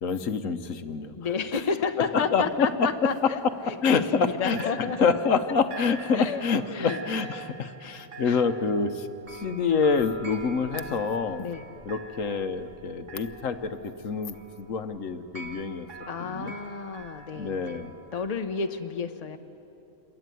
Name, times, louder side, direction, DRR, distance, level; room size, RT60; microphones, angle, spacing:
voice 1, 0.0-1.1 2.1-2.9 3.8-4.7 5.0-11.5 11.8-15.9 16.2-16.5 17.4-17.9, left 5 dB, 65° left, 9 dB, 1.3 m, -27 dB
voice 2, 1.1-3.4 3.7-5.0 6.1-6.4 6.7-7.0 8.2-8.4 11.4-11.6 16.1-19.4, left 5 dB, 30° left, 7 dB, 1.0 m, -31 dB
sound 1, 2.4-4.3 4.6-18.5, right 3 dB, 55° right, 2.6 m, -45 dB
27.5 x 22.5 x 9.3 m, 2.9 s
omnidirectional pair, 1.5 m